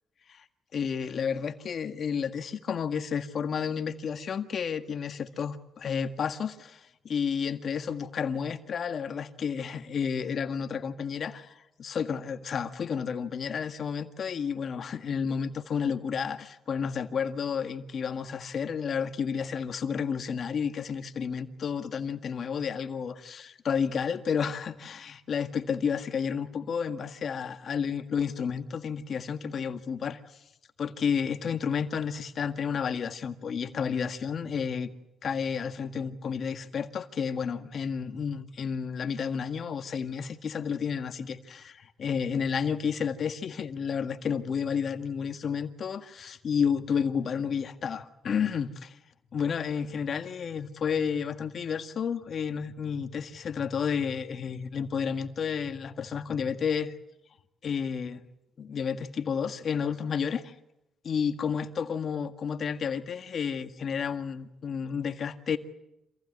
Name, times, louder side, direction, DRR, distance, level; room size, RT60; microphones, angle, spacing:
voice 1, 0.7-30.2 30.8-34.9 35.2-49.0 49.3-56.9 57.6-58.2 58.6-60.5 61.0-65.6, left 6 dB, 55° left, 1.7 m, -31 dB
27.0 x 15.5 x 9.6 m
cardioid pair, 90°, 0 cm